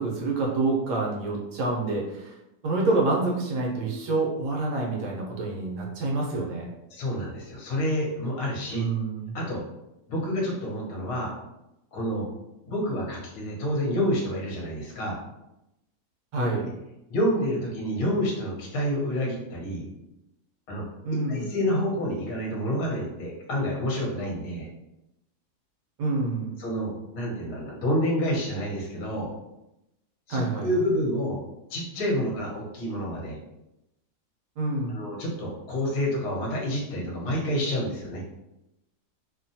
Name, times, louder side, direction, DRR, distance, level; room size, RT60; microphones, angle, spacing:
voice 1, 0.0-2.3 2.6-6.7 8.7-9.3 16.3-16.7 21.0-21.5 26.0-26.5 30.3-30.7 34.6-35.0, right 3 dB, 85° right, -1 dB, 1.3 m, -27 dB
voice 2, 6.9-8.8 9.3-9.6 10.1-11.3 11.9-12.3 12.7-15.2 16.6-16.7 17.1-19.9 20.7-20.8 21.3-24.7 26.6-29.3 30.3-31.4 31.7-33.4 34.9-38.2, equal, 65° left, -2 dB, 1.2 m, -28 dB
3.1 x 2.1 x 2.7 m, 0.90 s
omnidirectional pair, 1.7 m